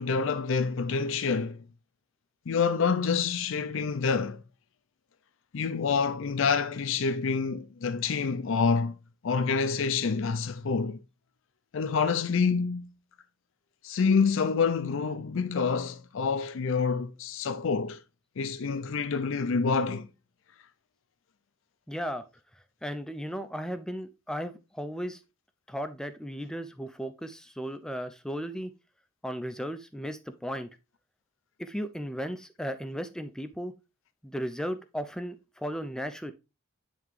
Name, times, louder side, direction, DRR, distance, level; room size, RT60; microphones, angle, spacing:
voice 1, 0.0-1.6 2.5-4.4 5.5-9.0 9.2-11.0 11.7-12.9 13.8-18.0 18.4-20.1, left 5 dB, 65° left, 0.5 m, -27 dB
voice 2, 21.9-22.2 22.8-25.2 25.7-28.7 29.2-30.7 31.6-33.7 34.2-36.3, equal, 5° left, 0.4 m, -35 dB
9.2 x 3.5 x 3.2 m
head